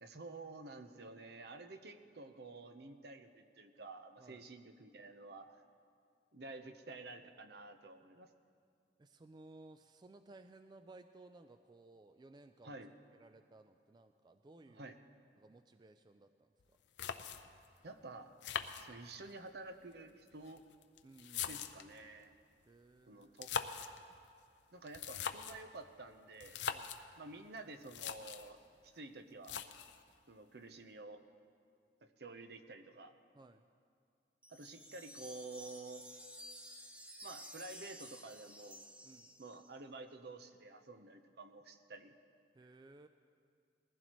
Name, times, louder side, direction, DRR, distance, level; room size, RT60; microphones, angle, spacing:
voice 1, 0.0-5.6 6.3-8.3 12.6-12.9 14.6-15.0 17.8-18.3 18.8-20.6 21.5-22.3 23.1-23.5 24.7-26.6 27.2-28.6 28.8-29.6 30.3-31.2 32.0-33.2 34.5-36.1 37.2-38.8 39.4-42.1, right 2 dB, 65° right, 7 dB, 0.8 m, -51 dB
voice 2, 9.0-12.8 13.2-15.0 15.4-16.8 21.0-21.6 22.7-23.4 26.7-27.0 33.3-33.7 39.0-39.4 42.5-43.1, right 2 dB, 25° right, 8 dB, 0.3 m, -59 dB
sound 1, 16.6-16.7 17.0-17.7 18.4-19.4 20.3-22.0 23.2-24.0 24.9-25.7 26.4-27.0 27.6-27.7 27.8-28.5 29.4-30.0, left 7 dB, 80° left, 0.6 m, -42 dB
sound 2, 34.4-39.8, equal, 5° right, 0.7 m, -53 dB
20.0 x 15.0 x 3.1 m, 2.3 s
head